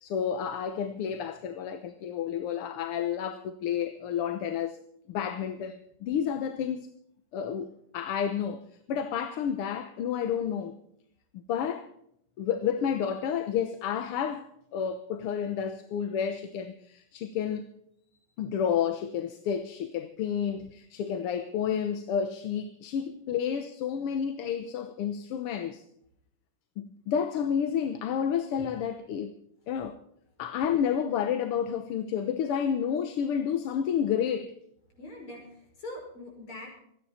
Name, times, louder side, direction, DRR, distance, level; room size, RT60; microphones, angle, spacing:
voice 1, 0.0-4.8 5.1-6.9 7.3-8.6 8.9-10.8 11.5-11.9 12.4-14.5 14.7-17.7 18.4-25.8 26.8-29.3 29.7-30.0 30.4-34.5, left 8 dB, 90° left, 1.9 m, -30 dB
voice 2, 34.9-36.7, left 1 dB, 70° left, 6.6 m, -43 dB
27.0 x 10.0 x 4.3 m
omnidirectional pair, 2.4 m